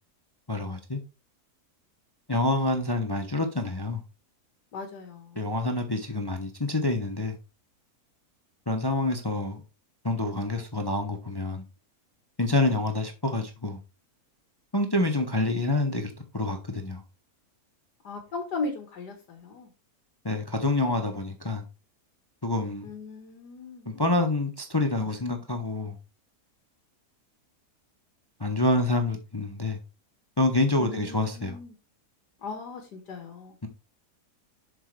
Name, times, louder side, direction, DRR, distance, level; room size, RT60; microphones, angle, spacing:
voice 1, 0.5-1.0 2.3-4.0 5.4-7.3 8.7-9.6 10.0-11.6 12.4-13.8 14.7-17.0 20.2-21.6 22.4-22.9 23.9-26.0 28.4-29.8 30.4-31.6 33.6-33.7, left 2 dB, 20° left, 0.8 m, -27 dB
voice 2, 4.7-5.4 18.0-19.7 22.8-23.9 30.8-31.7 32.4-33.5, left 3 dB, 85° left, 2.1 m, -37 dB
7.5 x 6.6 x 3.3 m
omnidirectional pair, 1.7 m